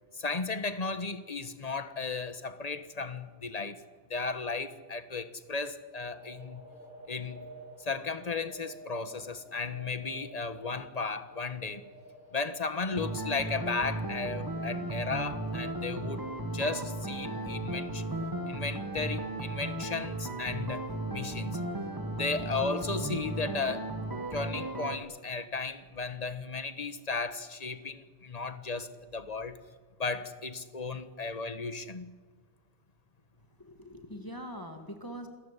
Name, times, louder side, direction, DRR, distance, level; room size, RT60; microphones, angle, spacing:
voice 1, 0.1-3.8 4.1-6.6 7.1-7.4 7.8-11.8 12.3-18.0 18.5-20.9 21.1-21.6 22.2-23.9 24.3-29.6 30.0-32.1, left 4 dB, 35° left, 1.4 m, -35 dB
sound 1, 5.9-13.1, right 2 dB, 50° right, 4.1 m, -50 dB
sound 2, 13.0-25.0, right 2 dB, 20° right, 1.7 m, -35 dB
voice 2, 33.6-35.3, equal, 20° left, 2.1 m, -42 dB
28.0 x 15.0 x 9.9 m
omnidirectional pair, 1.1 m